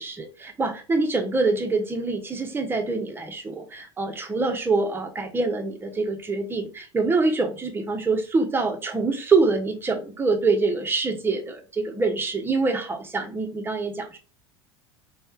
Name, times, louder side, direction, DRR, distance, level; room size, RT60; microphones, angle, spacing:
voice 1, 0.0-14.2, right 3 dB, 15° right, 0.8 m, -25 dB
3.3 x 2.3 x 4.4 m
figure-of-eight pair, 75°, 14 cm